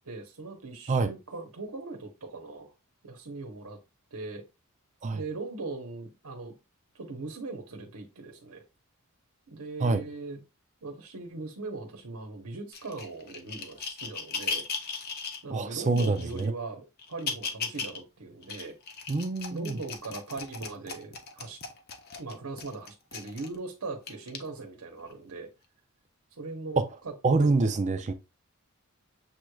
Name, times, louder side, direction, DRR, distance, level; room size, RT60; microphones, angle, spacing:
voice 1, 0.0-2.7 3.0-3.8 4.1-4.4 5.1-6.5 6.9-8.6 9.5-10.4 10.8-14.6 15.4-18.7 19.5-21.6 22.2-25.5 26.3-27.1 27.4-27.5, right 3 dB, 85° right, 1.0 m, -40 dB
sound 1, 12.7-15.4 16.0-16.5 17.0-18.0 18.4-23.5 24.1-24.4 25.1-25.2, left 5 dB, 45° left, 0.8 m, -37 dB
voice 2, 15.5-16.5 19.1-19.8 26.8-26.9 27.2-28.1, right 3 dB, 35° right, 0.4 m, -26 dB
7.2 x 3.1 x 2.3 m
head